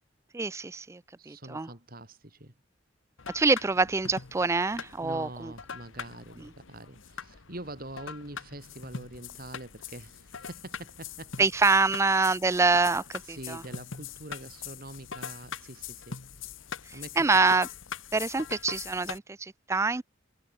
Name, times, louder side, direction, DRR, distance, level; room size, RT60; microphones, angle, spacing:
voice 1, 0.3-1.7 3.3-5.5 6.4-6.5 11.4-13.6 16.9-17.7 18.1-20.0, right 3 dB, 15° right, 0.3 m, -26 dB
voice 2, 1.2-2.5 5.0-11.7 13.2-16.6 16.9-17.3, right 1 dB, 50° right, 5.6 m, -44 dB
sound 1, 3.2-19.2, left 6 dB, 80° left, 1.3 m, -42 dB
head